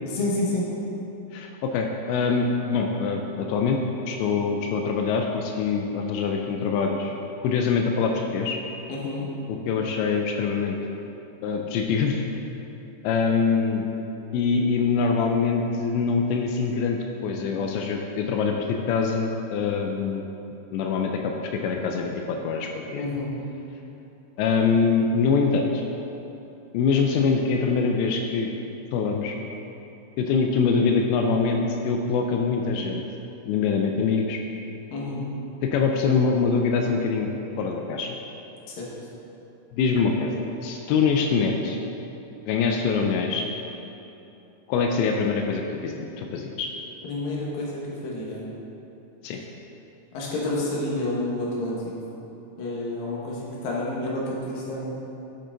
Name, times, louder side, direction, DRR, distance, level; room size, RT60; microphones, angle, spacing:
voice 1, 0.1-0.7 8.9-9.3 23.0-23.3 34.9-35.3 38.8-38.9 47.0-48.5 50.1-51.8 52.6-54.9, left 2 dB, 65° left, -5 dB, 2.6 m, -29 dB
voice 2, 1.3-3.8 4.1-7.1 7.4-8.6 9.5-10.8 11.4-12.2 13.0-13.9 14.3-20.2 20.7-23.0 24.4-25.8 26.7-28.5 28.9-29.4 30.2-33.0 33.5-34.4 35.6-37.3 37.6-38.2 39.7-41.8 42.5-43.4 44.7-46.7 49.2-49.4, left 5 dB, 90° left, 2 dB, 2.5 m, -24 dB
8.8 x 7.7 x 3.9 m, 2.9 s
omnidirectional pair, 5.6 m